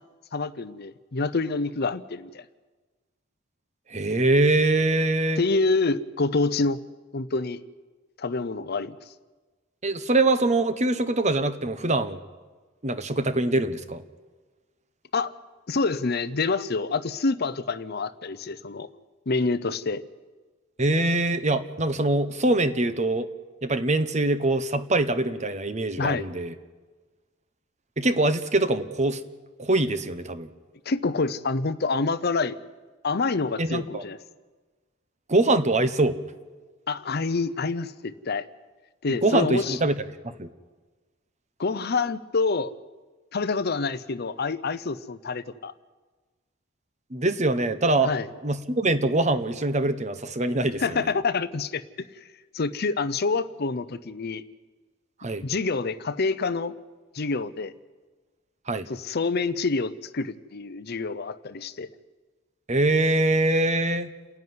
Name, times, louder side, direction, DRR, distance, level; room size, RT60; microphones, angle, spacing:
voice 1, 0.3-2.4 5.4-6.8 7.1-7.6 8.2-9.0 15.1-15.3 15.7-18.9 19.3-20.0 26.0-26.3 30.9-32.6 33.0-34.2 36.9-38.5 39.0-39.8 41.6-42.7 43.3-45.7 48.0-48.3 50.8-51.8 52.5-54.4 55.4-56.7 57.1-57.7 58.9-61.9, left 3 dB, 55° left, 14 dB, 0.7 m, -27 dB
voice 2, 3.9-5.4 9.8-12.2 12.8-14.0 20.8-23.3 23.6-26.5 28.0-29.2 29.6-30.5 33.6-34.0 35.3-36.2 39.2-39.9 40.2-40.5 47.1-48.1 48.4-51.1 55.2-55.4 58.7-58.9 62.7-64.1, right 2 dB, 35° right, 11 dB, 1.1 m, -23 dB
29.0 x 11.0 x 9.6 m, 1.3 s
head